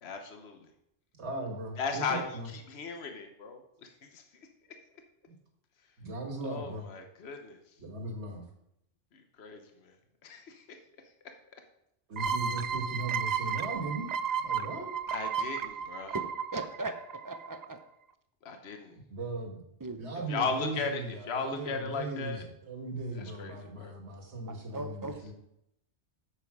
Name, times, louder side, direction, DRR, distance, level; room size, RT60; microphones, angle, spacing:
voice 1, 0.0-0.7 1.8-4.2 6.4-7.6 9.1-9.9 10.2-10.8 15.1-16.2 18.4-19.0 20.3-22.4 23.1-23.9, left 4 dB, 60° left, 5 dB, 1.3 m, -37 dB
voice 2, 1.2-2.5 6.0-6.9 7.8-8.5 12.1-14.1 14.4-14.9 19.1-19.6 20.0-25.3, right 2 dB, 60° right, 3 dB, 1.9 m, -38 dB
sound 1, 12.2-17.6, right 7 dB, 90° right, 0.3 m, -33 dB
voice 3, 16.5-17.0 17.2-17.8 19.8-20.3 24.5-25.2, right 2 dB, 20° right, 8 dB, 0.6 m, -38 dB
8.7 x 7.4 x 4.8 m, 0.79 s
omnidirectional pair, 1.3 m